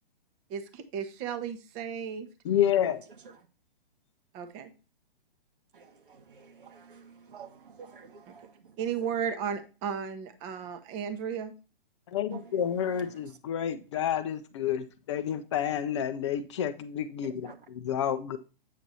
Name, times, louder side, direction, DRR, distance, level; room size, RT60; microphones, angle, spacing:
voice 1, 0.5-2.3 4.3-4.7 8.3-8.4 8.8-11.5, right 7 dB, 25° right, 0.8 m, -34 dB
voice 2, 2.4-3.0 12.1-18.4, left 9 dB, 30° left, 0.5 m, -29 dB
voice 3, 6.4-7.5 7.8-8.4 12.3-12.4 17.5-17.6, right 6 dB, 65° right, 1.3 m, -48 dB
8.2 x 5.9 x 2.7 m
figure-of-eight pair, 130°, 29 cm